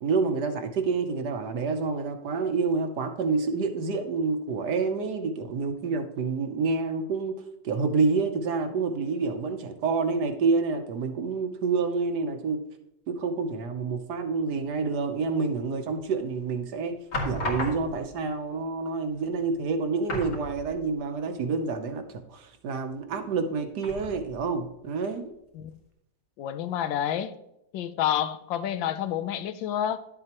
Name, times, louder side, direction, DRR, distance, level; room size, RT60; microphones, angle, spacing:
voice 1, 0.0-7.4 7.6-12.6 13.1-17.0 17.2-25.3, right 4 dB, 65° right, 1.3 m, -28 dB
sound 1, 15.9-16.3 17.1-18.2 19.1-19.2 19.5-19.7 20.0-21.0 21.4-21.5 23.8-24.5 25.0-25.1, left 1 dB, 65° left, 2.6 m, -34 dB
voice 2, 26.4-27.3 27.7-30.0, left 10 dB, 85° left, 1.4 m, -29 dB
11.0 x 7.5 x 3.0 m
omnidirectional pair, 2.0 m